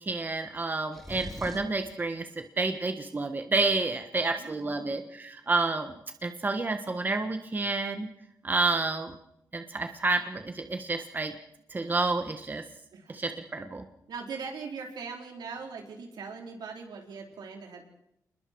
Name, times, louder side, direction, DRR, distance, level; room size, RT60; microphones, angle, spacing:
voice 1, 0.0-2.2 2.6-8.1 8.4-9.1 9.5-11.3 11.7-12.6 13.1-13.8, right 3 dB, 25° right, 6 dB, 1.4 m, -29 dB
sound 1, 0.9-1.8, left 1 dB, 5° left, 3.2 m, -41 dB
voice 2, 4.4-5.0 12.9-13.2 14.1-17.8, right 5 dB, 75° right, 1 dB, 4.5 m, -41 dB
28.5 x 21.0 x 4.7 m, 0.80 s
wide cardioid pair, 115°, 7 cm